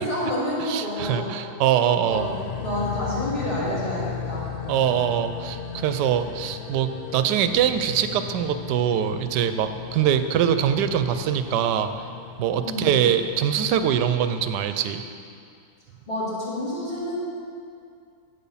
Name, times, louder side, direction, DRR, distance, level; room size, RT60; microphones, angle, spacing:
voice 1, 0.0-1.2 2.0-4.5 12.6-12.9 16.1-17.2, left 1 dB, 30° left, -8 dB, 2.7 m, -29 dB
voice 2, 0.6-2.3 4.7-12.0 12.4-15.0, right 9 dB, 85° right, 9 dB, 1.2 m, -23 dB
sound 1, 2.1-14.6, left 7 dB, 75° left, 0.7 m, -36 dB
8.5 x 8.4 x 5.5 m, 2.4 s
omnidirectional pair, 1.8 m